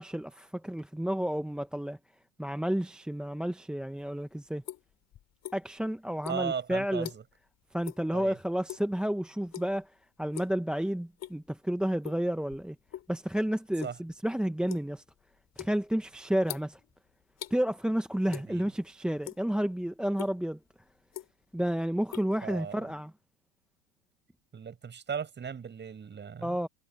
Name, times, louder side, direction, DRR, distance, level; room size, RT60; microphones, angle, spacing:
voice 1, 0.0-2.0 2.4-4.6 5.5-7.1 7.7-9.9 10.2-12.8 13.1-15.0 15.6-16.8 17.5-20.6 21.5-23.1 26.4-26.7, equal, ahead, 1.2 m, -31 dB
sound 1, 4.0-5.9 6.2-7.5 7.8-8.1 8.4-9.0 9.5-9.9 10.2-10.6 11.0-11.6 12.0-13.1 13.5-17.6 18.3-18.8 19.1-19.7 20.2-20.3 20.9-21.6 21.8-23.0, left 12 dB, 35° left, 3.4 m, -43 dB
voice 2, 6.3-7.2 8.1-8.4 13.8-14.0 18.2-18.7 22.4-22.9 24.5-26.6, right 7 dB, 20° right, 7.8 m, -37 dB
hypercardioid pair, 110°, 47 cm